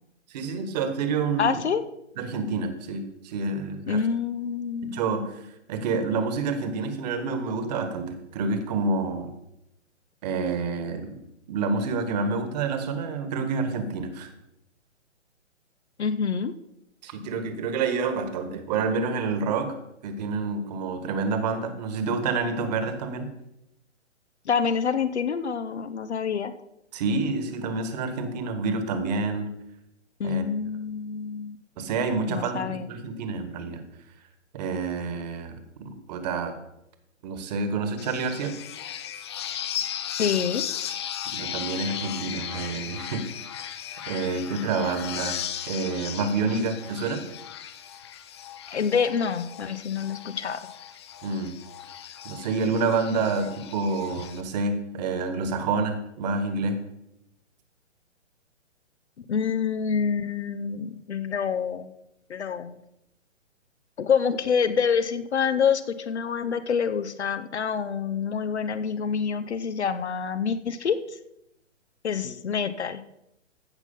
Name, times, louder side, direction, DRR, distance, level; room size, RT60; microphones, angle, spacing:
voice 1, 0.3-1.6 2.2-4.0 4.8-5.4 5.7-9.3 10.2-11.1 11.5-14.3 17.0-19.7 20.0-23.3 26.9-29.5 30.2-30.4 31.8-33.8 34.5-35.5 35.8-36.5 37.2-38.6 41.3-43.5 44.1-47.2 51.2-51.6 52.2-56.8, right 4 dB, 35° right, 9 dB, 1.7 m, -28 dB
voice 2, 1.4-1.8 3.9-5.0 16.0-16.5 24.5-26.5 30.2-31.9 32.3-32.9 40.2-40.6 48.7-50.6 59.3-61.9 62.3-62.8 64.0-71.2 72.0-73.0, left 6 dB, 65° left, 11 dB, 0.8 m, -27 dB
sound 1, 38.0-54.4, left 10 dB, 25° left, 0.5 m, -36 dB
15.0 x 5.9 x 5.5 m, 0.83 s
figure-of-eight pair, 130°, 37 cm